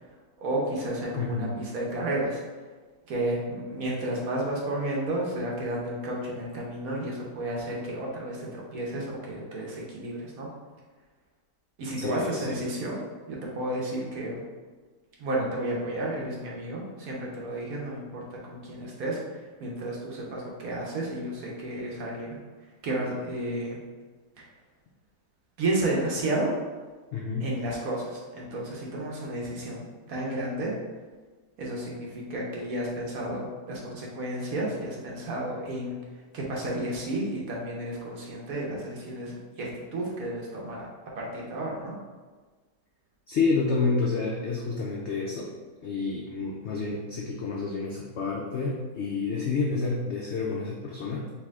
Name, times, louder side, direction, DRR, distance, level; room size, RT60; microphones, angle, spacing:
voice 1, 0.4-2.4 3.1-10.5 11.8-14.4 15.2-22.4 22.8-23.8 24.4-24.5 25.6-26.5 27.4-30.7 31.6-36.0 36.3-40.9 41.2-41.9, right 1 dB, 60° right, -3 dB, 1.2 m, -32 dB
voice 2, 1.1-1.6 12.0-12.6 27.1-27.5 43.3-45.5 45.8-51.3, left 4 dB, 85° left, -2 dB, 0.6 m, -29 dB
4.7 x 2.7 x 3.6 m, 1.4 s
omnidirectional pair, 1.8 m